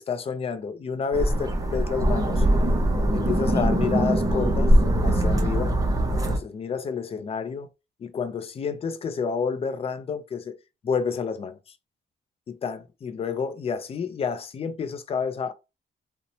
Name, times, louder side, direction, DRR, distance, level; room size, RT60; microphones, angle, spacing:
voice 1, 0.0-2.5 3.1-4.7 5.0-5.8 6.3-7.7 8.0-10.6 10.8-11.6 12.5-15.5, left 6 dB, 35° left, 0.4 m, -29 dB
sound 1, 1.1-6.4, right 1 dB, 20° right, 0.5 m, -22 dB
2.7 x 2.1 x 2.7 m
cardioid pair, 125°, 18 cm